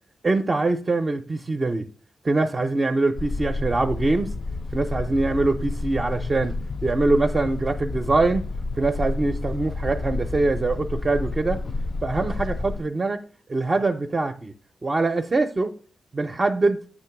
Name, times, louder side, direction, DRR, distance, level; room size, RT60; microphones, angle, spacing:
voice 1, 0.2-1.8 2.2-4.3 4.7-8.4 8.8-11.6 12.0-13.2 13.5-14.5 14.8-15.7 16.1-16.8, right 3 dB, 35° right, 0.5 m, -23 dB
sound 1, 3.2-12.8, left 3 dB, 55° left, 0.4 m, -30 dB
8.3 x 3.0 x 5.7 m
wide cardioid pair, 100°, 0 cm